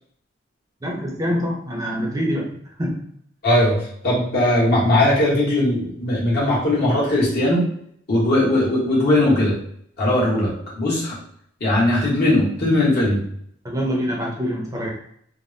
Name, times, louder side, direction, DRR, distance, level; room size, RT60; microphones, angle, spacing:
voice 1, 0.8-2.5 2.8-3.0 13.6-14.9, equal, 20° right, -2 dB, 0.6 m, -25 dB
voice 2, 3.4-3.7 4.0-7.7 8.1-9.5 10.0-11.2 11.6-13.2, left 1 dB, 55° left, -6 dB, 1.3 m, -19 dB
3.3 x 2.1 x 2.7 m, 0.67 s
head